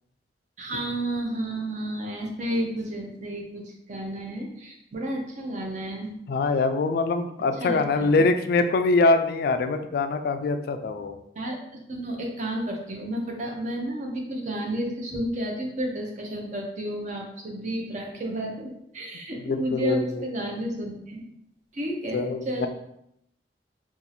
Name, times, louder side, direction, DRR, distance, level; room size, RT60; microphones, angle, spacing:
voice 1, 0.6-6.1 7.6-8.2 11.4-11.6 11.9-21.2 21.7-22.7, right 1 dB, 45° right, 0 dB, 0.7 m, -31 dB
voice 2, 6.3-11.2 19.4-20.3 22.1-22.7, left 3 dB, 60° left, 8 dB, 0.3 m, -24 dB
2.7 x 2.5 x 4.0 m, 0.79 s
head